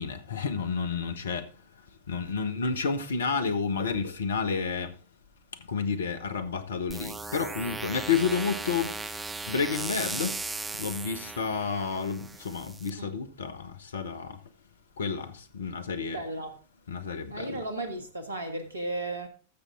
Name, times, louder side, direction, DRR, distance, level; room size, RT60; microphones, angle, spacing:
voice 1, 0.0-1.4 2.1-4.9 5.7-8.9 9.5-10.3 10.8-13.6 13.9-14.4 15.0-15.3 15.5-16.2 16.9-17.6, left 5 dB, 65° left, 1.1 m, -30 dB
sound 1, 6.9-12.9, right 3 dB, 10° right, 0.7 m, -37 dB
voice 2, 16.1-16.5 17.3-19.3, right 2 dB, 75° right, 1.7 m, -34 dB
13.5 x 6.8 x 3.7 m
figure-of-eight pair, 90°, 0 cm